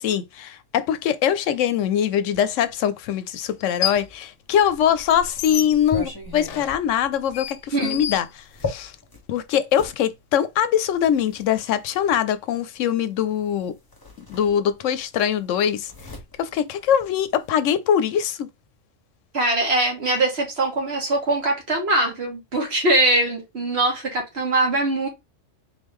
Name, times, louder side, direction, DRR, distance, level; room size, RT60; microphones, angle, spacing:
voice 1, 0.0-8.9 9.3-13.7 14.3-15.9 16.4-18.5, left 9 dB, 85° left, 0.9 m, -22 dB
sound 1, 2.3-2.4 3.5-4.2 4.5-8.9, left 10 dB, 60° left, 0.7 m, -32 dB
sound 2, 4.6-10.0 10.9-12.2 13.4-13.6 13.9-15.0 15.3-17.5, left 3 dB, 20° left, 1.3 m, -37 dB
voice 2, 19.3-25.1, right 2 dB, 55° right, 1.9 m, -22 dB
3.8 x 3.1 x 3.6 m
omnidirectional pair, 1.3 m